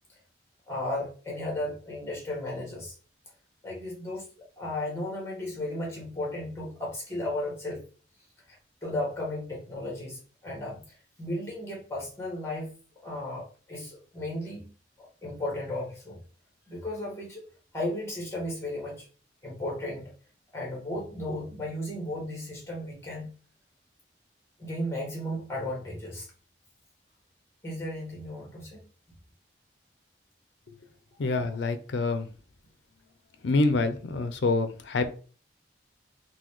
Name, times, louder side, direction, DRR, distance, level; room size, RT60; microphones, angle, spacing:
voice 1, 0.7-2.9 3.6-4.3 4.6-7.8 8.8-12.7 13.0-14.7 15.0-16.2 16.7-17.4 17.7-19.1 19.4-20.1 20.5-23.3 24.6-26.3 27.6-28.8, left 1 dB, 15° left, -2 dB, 1.3 m, -34 dB
voice 2, 31.2-32.3 33.4-35.1, left 3 dB, 70° left, 10 dB, 0.5 m, -26 dB
3.9 x 2.2 x 3.0 m, 0.38 s
head